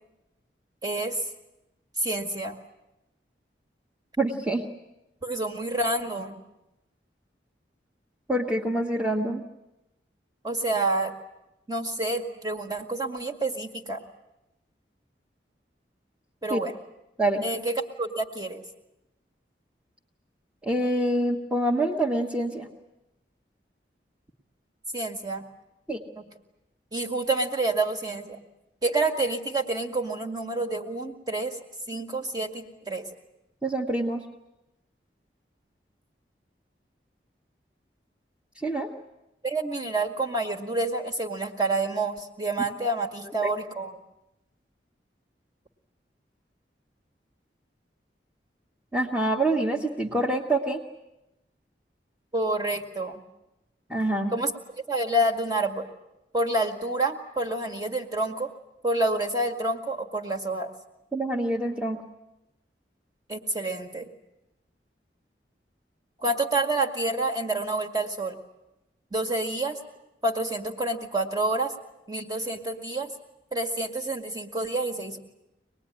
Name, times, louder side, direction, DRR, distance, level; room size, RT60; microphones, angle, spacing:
voice 1, 0.8-1.2 2.0-2.6 5.2-6.4 10.4-11.1 11.7-14.0 16.4-16.7 17.4-18.6 24.9-25.4 26.2-26.3 26.9-28.4 28.8-31.6 31.9-33.1 39.4-44.0 52.3-53.2 54.3-55.9 56.3-58.5 58.8-60.7 63.3-64.1 66.2-68.4 69.1-69.8 70.2-71.7 72.1-73.1 73.5-75.2, right 2 dB, 20° right, 3 dB, 1.9 m, -28 dB
voice 2, 4.2-4.6 8.3-9.4 16.5-16.6 17.2-17.4 20.6-22.7 25.9-26.0 33.6-34.2 38.6-38.9 43.4-43.5 48.9-50.8 53.9-54.3 61.1-62.0, right 1 dB, 5° right, -2 dB, 1.3 m, -26 dB
25.0 x 20.0 x 9.9 m, 0.94 s
head